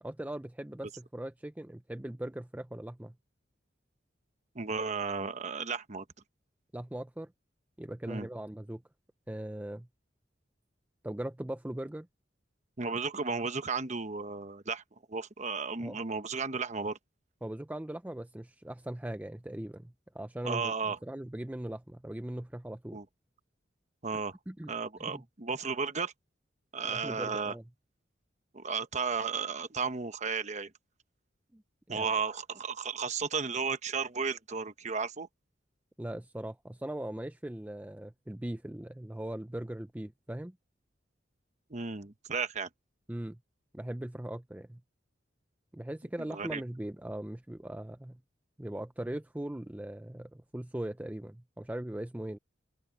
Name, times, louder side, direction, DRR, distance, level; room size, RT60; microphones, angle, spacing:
voice 1, 0.0-3.1 6.7-7.3 7.8-8.8 9.3-9.9 11.0-12.1 15.8-16.0 17.4-23.0 24.1-24.2 24.5-24.7 25.0-25.2 26.9-27.6 31.5-31.6 31.9-32.2 36.0-40.6 43.1-43.4 43.7-44.8 45.7-48.2 48.6-52.4, right 1 dB, 10° right, 0.4 m, -40 dB
voice 2, 4.5-6.0 8.1-8.3 12.8-14.8 15.1-17.0 20.4-21.0 22.9-23.0 24.0-24.4 24.7-26.1 26.7-27.5 28.5-30.7 31.9-35.3 41.7-42.7 46.3-46.6, right 5 dB, 40° right, 1.1 m, -34 dB
open air
head